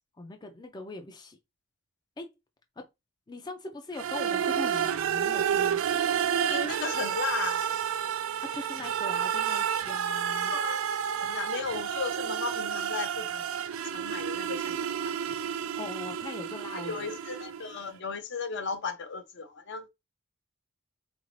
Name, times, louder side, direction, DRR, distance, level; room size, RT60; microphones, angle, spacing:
voice 1, 0.2-1.4 2.2-2.3 2.8-2.9 3.3-5.8 8.4-10.5 15.3-15.4 15.8-17.1, left 2 dB, 20° left, 0.4 m, -41 dB
sound 1, 3.9-17.8, right 8 dB, 65° right, 0.3 m, -30 dB
voice 2, 6.4-7.7 10.5-10.8 11.2-13.5 13.9-15.2 16.7-19.9, left 5 dB, 55° left, 0.7 m, -35 dB
4.0 x 2.6 x 3.1 m
head